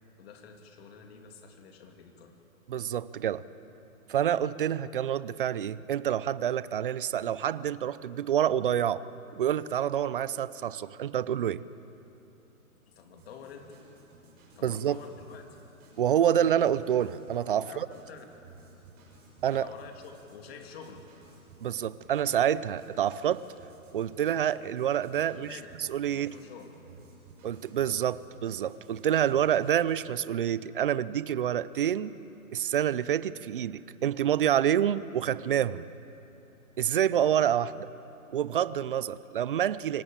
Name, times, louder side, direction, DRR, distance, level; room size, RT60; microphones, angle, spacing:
voice 1, 0.2-2.3 12.9-13.8 14.6-15.5 17.6-17.8 18.1-18.2 19.5-21.1 25.3-25.7 26.1-26.7, left 6 dB, 45° left, 4 dB, 3.0 m, -48 dB
voice 2, 2.7-3.4 4.1-9.0 9.3-11.6 14.6-15.0 16.0-17.9 19.4-19.7 21.6-23.4 23.9-26.3 27.4-32.1 32.5-35.8 36.8-37.9 38.3-40.0, right 10 dB, 40° right, 18 dB, 0.5 m, -27 dB
sound 1, 13.2-30.0, right 3 dB, 20° right, 6.7 m, -56 dB
25.0 x 17.0 x 8.9 m, 2.9 s
hypercardioid pair, 150°, 43 cm